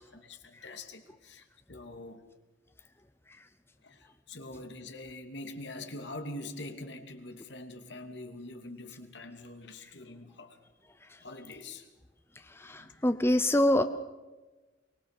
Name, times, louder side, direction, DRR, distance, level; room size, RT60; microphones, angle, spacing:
voice 1, 0.0-2.2 3.8-10.6 11.2-11.9 12.7-13.0, left 2 dB, 65° left, 6 dB, 2.6 m, -44 dB
voice 2, 12.5-13.8, left 1 dB, 15° left, 9 dB, 0.8 m, -25 dB
24.0 x 21.0 x 6.7 m, 1.2 s
head